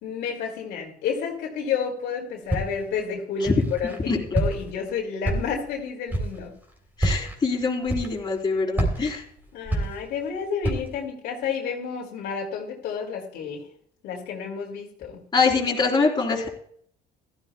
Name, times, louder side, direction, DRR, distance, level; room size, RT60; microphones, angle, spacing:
voice 1, 0.0-6.5 9.5-13.6 14.0-15.2, left 6 dB, 80° left, 0 dB, 2.4 m, -30 dB
Walk footsteps, 2.5-2.9 3.5-4.0 4.3-4.8 5.2-5.7 6.1-6.4 6.9-7.4 7.9-8.4 8.7-10.3 10.6-11.0, right 1 dB, 10° right, 3.3 m, -27 dB
voice 2, 7.0-9.2 15.3-16.5, left 4 dB, 25° left, -2 dB, 3.6 m, -24 dB
16.0 x 13.0 x 2.3 m, 0.64 s
cardioid pair, 110°, 17 cm